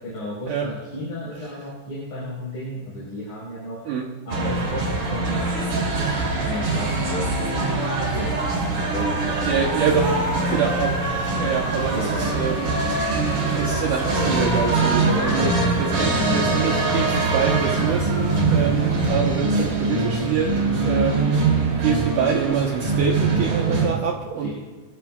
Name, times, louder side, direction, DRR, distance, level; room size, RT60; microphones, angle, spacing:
voice 1, 0.0-3.8 4.3-5.5 6.4-7.8 8.1-8.4 8.7-10.1 11.9-12.4 14.9-16.5 24.4-24.5, left 1 dB, 30° left, -7 dB, 4.8 m, -32 dB
sound 1, 4.3-23.9, right 3 dB, 40° right, 3.7 m, -23 dB
sound 2, 8.5-19.1, right 1 dB, 25° right, 2.5 m, -31 dB
voice 2, 9.5-10.1 10.5-11.0 11.4-13.0 13.5-15.5 15.8-24.5, right 6 dB, 75° right, 0 dB, 1.9 m, -26 dB
25.0 x 14.5 x 2.3 m, 1.3 s
omnidirectional pair, 5.1 m